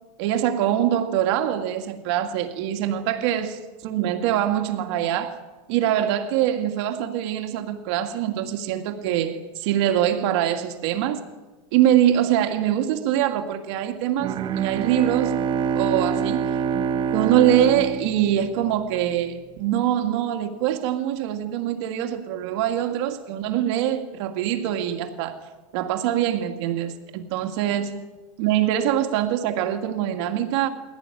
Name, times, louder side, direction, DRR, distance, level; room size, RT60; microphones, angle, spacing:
voice 1, 0.2-5.4 5.7-11.2 11.7-15.4 15.8-16.6 17.1-25.4 25.7-28.0 28.4-30.7, right 11 dB, 60° right, 2.4 m, -23 dB
Bowed string instrument, 14.2-19.1, right 6 dB, 30° right, 0.9 m, -26 dB
22.5 x 17.0 x 10.0 m
supercardioid pair, 145°, 17 cm